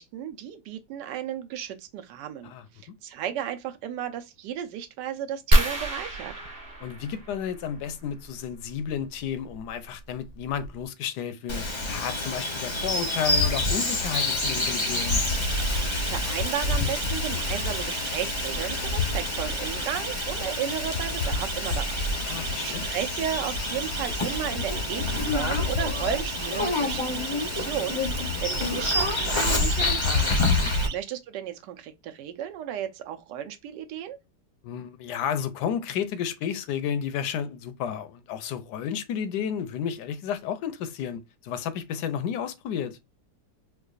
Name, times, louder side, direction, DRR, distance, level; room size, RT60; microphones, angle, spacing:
voice 1, 0.0-6.3 15.7-22.0 22.3-30.4 30.9-34.2, right 10 dB, 90° right, 1.2 m, -34 dB
sound 1, 5.5-7.9 9.5-9.7 10.3-10.4 10.6-10.9, right 1 dB, 35° right, 1.3 m, -25 dB
voice 2, 6.8-15.2 22.3-22.8 30.4-30.7 34.6-43.0, left 8 dB, 75° left, 1.1 m, -32 dB
Bird vocalization bird call bird song, 11.5-30.9, left 2 dB, 40° left, 0.4 m, -27 dB
Siren, 14.2-30.9, right 8 dB, 70° right, 1.1 m, -37 dB
4.6 x 2.2 x 2.4 m
omnidirectional pair, 1.8 m